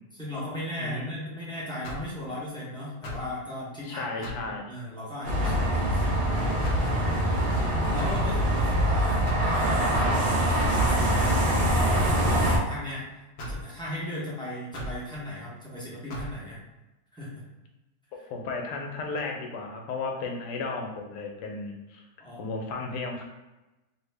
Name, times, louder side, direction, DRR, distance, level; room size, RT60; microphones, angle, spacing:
voice 1, 0.2-11.2 11.8-13.0 13.5-16.6 17.1-17.4 22.2-22.4, left 1 dB, 5° left, -8 dB, 0.5 m, -37 dB
sound 1, 1.8-2.2 3.0-3.3 4.2-4.5 5.4-5.7 6.6-6.9 8.0-8.3 9.3-9.5 10.6-10.8 11.9-12.2 13.4-13.6 14.7-15.0 16.1-16.3, left 1 dB, 60° left, 0.8 m, -36 dB
voice 2, 3.8-4.7 18.1-22.0 22.4-23.2, left 3 dB, 80° left, 2 dB, 1.2 m, -34 dB
sound 2, 5.2-12.6, right 1 dB, 55° right, 0.9 m, -24 dB
2.7 x 2.7 x 3.3 m, 1.0 s
omnidirectional pair, 1.8 m